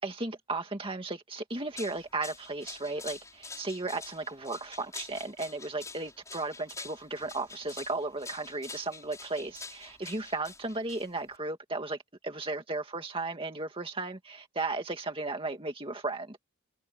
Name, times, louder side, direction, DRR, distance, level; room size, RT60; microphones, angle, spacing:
voice 1, 0.0-12.0 12.2-16.4, right 3 dB, 25° right, 2.2 m, -35 dB
sound 1, 1.5-11.4, left 4 dB, 15° left, 6.7 m, -46 dB
head